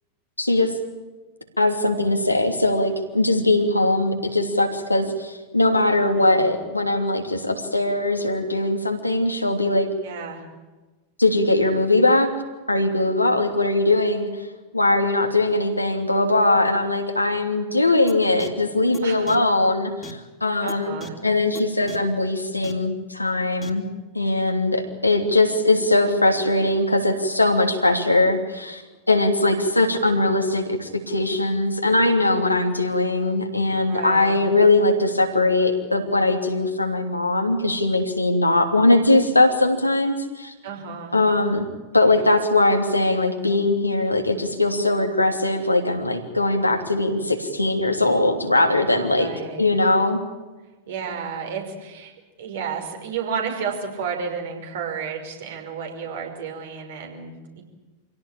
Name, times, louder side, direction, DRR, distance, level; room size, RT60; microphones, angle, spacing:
voice 1, 0.4-0.7 1.6-9.9 11.2-12.3 12.7-14.3 14.7-21.0 21.2-23.8 24.1-28.8 29.1-40.5 41.1-41.7 41.9-49.3 49.6-50.2, left 2 dB, 85° left, 4 dB, 3.1 m, -20 dB
voice 2, 6.1-6.4 10.0-10.4 19.0-19.4 20.6-21.2 33.8-34.4 40.6-41.1 48.9-49.7 50.9-52.1 52.4-57.6, right 6 dB, 60° right, 3 dB, 5.6 m, -32 dB
sound 1, 18.1-18.2 18.4-18.5 18.9-19.0 19.3-19.4 20.0-20.1 20.7-20.8 21.0-21.1 21.5-21.6 21.9-22.0 22.6-22.7 23.6-23.7, left 2 dB, 15° left, 3.1 m, -37 dB
27.0 x 17.5 x 8.9 m, 1.2 s
figure-of-eight pair, 90°, 0 cm